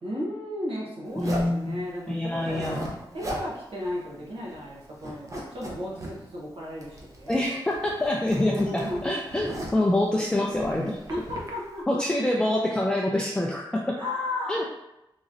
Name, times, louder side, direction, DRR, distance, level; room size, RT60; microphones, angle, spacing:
voice 1, 0.0-2.8 3.1-7.4 8.3-9.1 11.1-12.0 14.0-14.6, left 1 dB, 85° right, -4 dB, 1.1 m, -34 dB
voice 2, 1.2-2.9 7.3-11.0 11.9-14.0 14.5-14.6, left 1 dB, 10° left, -2 dB, 0.4 m, -26 dB
Zipper (clothing), 1.2-1.6 2.3-3.5 3.8-3.9 4.3-4.7 5.0-6.1 6.8-7.5 7.7-9.9 10.5-11.5, right 1 dB, 35° right, 0.7 m, -37 dB
3.7 x 3.1 x 2.6 m, 0.89 s
wide cardioid pair, 120°, 9 cm